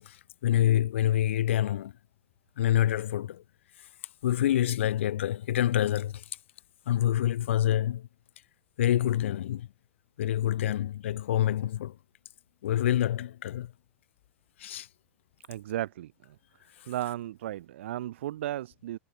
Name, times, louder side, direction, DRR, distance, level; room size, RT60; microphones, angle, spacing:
voice 1, 0.0-1.9 2.6-3.4 4.2-6.2 6.9-8.1 8.8-9.7 10.2-12.0 12.6-13.7 14.6-14.9, left 12 dB, 70° left, 0.7 m, -27 dB
voice 2, 15.5-16.4 16.9-19.0, right 13 dB, 70° right, 0.9 m, -35 dB
figure-of-eight pair, 90°, 7 cm